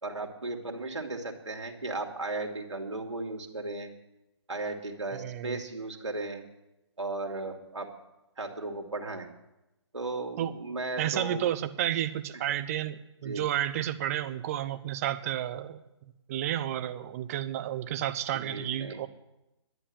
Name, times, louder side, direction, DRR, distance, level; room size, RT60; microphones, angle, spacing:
voice 1, 0.0-3.9 4.5-6.4 7.0-7.9 8.4-9.3 9.9-11.5 12.3-12.4 13.2-13.4 18.3-19.0, right 2 dB, 85° right, 1 dB, 2.5 m, -36 dB
voice 2, 5.1-5.6 10.4-10.5 11.0-15.8 16.3-19.1, right 11 dB, 30° right, 12 dB, 0.9 m, -31 dB
11.5 x 10.0 x 9.1 m, 0.96 s
figure-of-eight pair, 140°, 15 cm